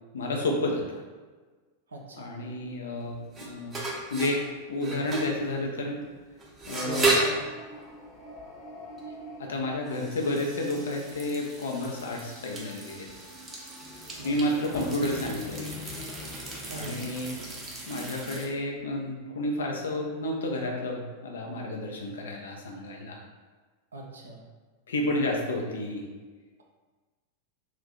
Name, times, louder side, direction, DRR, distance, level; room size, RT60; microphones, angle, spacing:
voice 1, 0.1-1.0 2.2-3.8 4.1-6.0 6.6-7.1 9.4-13.1 14.2-15.8 16.7-17.4 17.9-23.2 24.9-26.1, left 1 dB, 65° left, 0 dB, 0.5 m, -31 dB
voice 2, 1.9-2.3 6.8-7.4 14.2-14.4 16.7-17.1 23.9-24.4, right 3 dB, 70° right, 0 dB, 0.5 m, -39 dB
sound 1, 3.0-18.5, right 2 dB, 20° right, 0.6 m, -35 dB
sound 2, 6.8-11.1 13.7-18.7, left 2 dB, 25° left, 0.8 m, -45 dB
2.5 x 2.2 x 3.7 m, 1.4 s
figure-of-eight pair, 90°, 0 cm